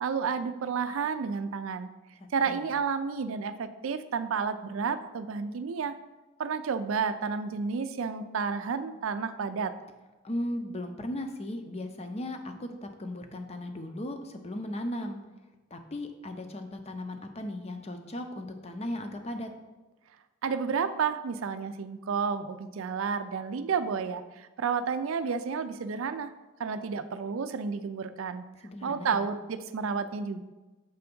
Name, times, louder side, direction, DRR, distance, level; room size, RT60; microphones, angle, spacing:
voice 1, 0.0-1.9 2.3-6.0 6.4-9.7 20.4-26.3 26.6-28.4 28.8-30.4, right 5 dB, 75° right, 11 dB, 0.4 m, -31 dB
voice 2, 2.2-2.6 10.2-15.2 15.7-19.5 28.6-29.2, left 1 dB, 30° left, 6 dB, 0.6 m, -37 dB
6.8 x 3.4 x 5.3 m, 1.1 s
head